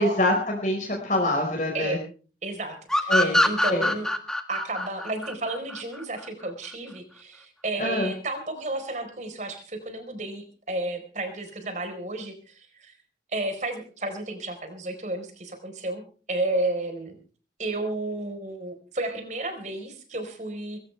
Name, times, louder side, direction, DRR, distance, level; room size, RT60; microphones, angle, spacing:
voice 1, 0.0-2.0 3.1-3.4 3.7-3.9 7.8-8.1, left 1 dB, 45° left, 1 dB, 4.7 m, -25 dB
voice 2, 2.4-4.1 4.5-12.9 13.3-17.1 17.6-20.8, right 2 dB, 40° right, 7 dB, 4.5 m, -32 dB
sound 1, 2.9-6.3, left 1 dB, 5° left, 1.6 m, -24 dB
21.0 x 17.5 x 3.4 m, 0.38 s
head